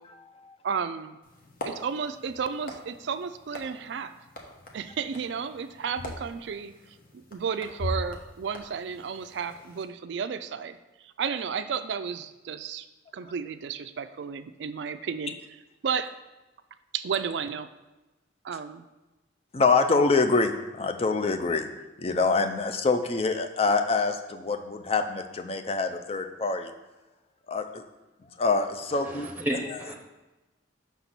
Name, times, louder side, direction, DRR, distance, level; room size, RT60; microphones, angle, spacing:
voice 1, 0.6-1.2 1.6-4.1 4.7-6.7 7.1-10.8 11.0-12.8 13.1-15.4 15.8-16.1 16.9-17.7 18.4-18.9, right 6 dB, 60° right, 11 dB, 0.4 m, -32 dB
sound 1, 1.2-9.8, left 1 dB, 45° left, 1.0 m, -41 dB
voice 2, 19.5-21.7 22.0-26.7 27.5-27.8 28.4-29.8, left 3 dB, 30° left, 7 dB, 0.4 m, -25 dB
voice 3, 29.0-29.9, equal, 10° right, 1 dB, 0.8 m, -32 dB
6.0 x 4.1 x 5.9 m, 1.1 s
head